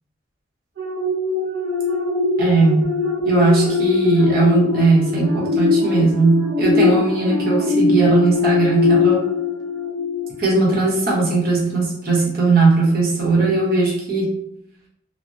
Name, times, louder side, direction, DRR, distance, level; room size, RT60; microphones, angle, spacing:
sound 1, 0.8-10.6 11.1-11.3, left 4 dB, 75° right, 0.6 m, -21 dB
voice 1, 2.4-2.9 3.3-9.3 10.4-14.3, right 3 dB, 50° right, -5 dB, 0.9 m, -18 dB
3.2 x 2.1 x 2.6 m, 0.75 s
head